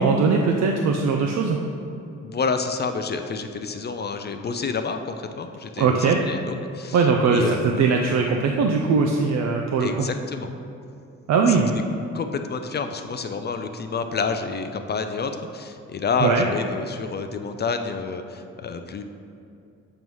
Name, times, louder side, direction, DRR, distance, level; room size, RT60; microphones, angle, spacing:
voice 1, 0.0-1.6 5.8-6.2 6.9-10.1 11.3-11.7 16.2-16.5, right 5 dB, 65° right, 1 dB, 0.5 m, -20 dB
voice 2, 2.2-7.1 7.3-7.8 9.8-10.5 11.5-11.6 12.1-19.0, left 5 dB, 35° left, 7 dB, 0.4 m, -29 dB
7.7 x 3.1 x 5.4 m, 2.6 s
cardioid pair, 90°, 30 cm